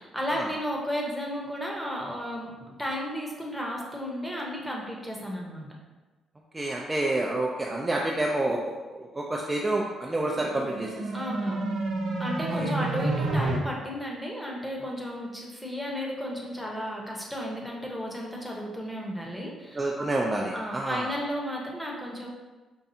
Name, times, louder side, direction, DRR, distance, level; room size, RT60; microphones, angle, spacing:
voice 1, 0.0-5.7 11.1-11.7 12.2-19.9 20.5-22.3, equal, 5° left, -2 dB, 0.8 m, -33 dB
voice 2, 6.5-10.9 12.5-12.7 19.7-21.1, right 2 dB, 20° right, -2 dB, 0.4 m, -28 dB
sound 1, 10.3-13.6, right 2 dB, 85° right, 0.6 m, -29 dB
5.3 x 2.3 x 2.7 m, 1.2 s
cardioid pair, 90°, 0 cm